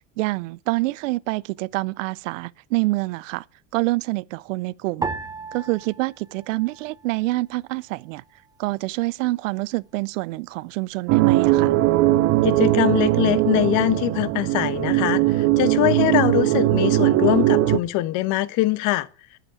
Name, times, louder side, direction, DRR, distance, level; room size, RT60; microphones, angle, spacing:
voice 1, 0.2-3.4 3.7-5.1 5.5-8.2 8.6-11.7, right 21 dB, 85° right, 0.6 m, -26 dB
sound 1, 5.0-7.5 7.8-8.7 9.3-9.7, right 4 dB, 10° right, 0.8 m, -35 dB
sound 2, 11.1-17.8, right 16 dB, 40° right, 0.7 m, -19 dB
voice 2, 12.4-19.1, left 17 dB, 50° left, 1.2 m, -22 dB
11.0 x 9.0 x 6.9 m
supercardioid pair, 135°, 37 cm